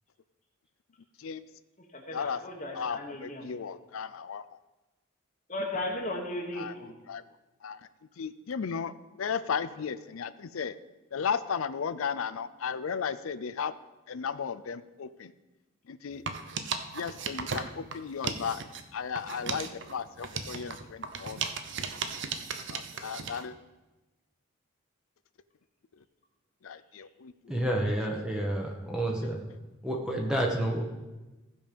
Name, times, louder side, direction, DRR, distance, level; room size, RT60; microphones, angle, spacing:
voice 1, 1.9-3.5 5.5-6.9, left 1 dB, 35° left, 0 dB, 1.1 m, -36 dB
voice 2, 2.7-4.4 6.6-6.7 7.1-7.2 7.6-7.8 8.2-8.9 9.2-10.8 11.1-13.7 14.1-15.3 15.9-16.2 16.9-18.6 18.9-21.4 22.7-23.5 26.6-27.6 29.2-29.3, left 6 dB, 80° left, 13 dB, 0.5 m, -35 dB
sound 1, 16.1-18.8 19.2-23.5, right 5 dB, 55° right, 0.7 m, -36 dB
voice 3, 27.5-29.4 29.8-30.8, right 1 dB, 5° right, 0 dB, 1.0 m, -29 dB
15.0 x 5.3 x 5.2 m, 1.1 s
head